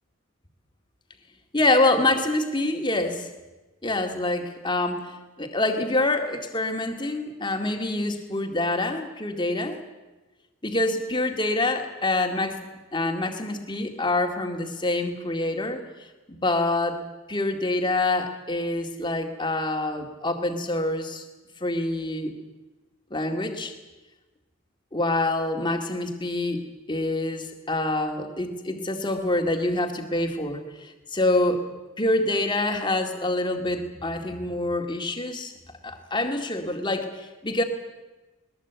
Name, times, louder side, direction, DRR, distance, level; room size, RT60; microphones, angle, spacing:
voice 1, 1.5-3.3 3.8-9.8 10.6-12.6 12.9-15.8 16.3-17.0 17.3-21.2 21.6-22.4 23.1-23.7 24.9-31.6 32.0-35.5 35.8-37.6, left 2 dB, 20° left, 5 dB, 2.2 m, -26 dB
21.0 x 20.5 x 8.2 m, 1.1 s
head